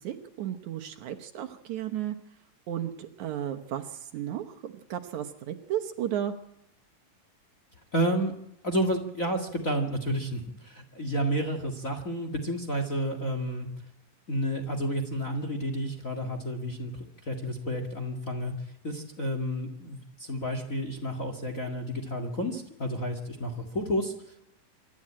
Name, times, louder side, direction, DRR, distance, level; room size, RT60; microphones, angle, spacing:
voice 1, 0.0-2.2 2.7-6.3, right 11 dB, 70° right, 6 dB, 2.3 m, -34 dB
voice 2, 7.9-8.3 8.6-13.7 14.3-16.9 17.2-18.5 18.8-24.5, equal, 30° left, 5 dB, 1.7 m, -31 dB
26.0 x 12.0 x 8.7 m, 0.80 s
omnidirectional pair, 3.9 m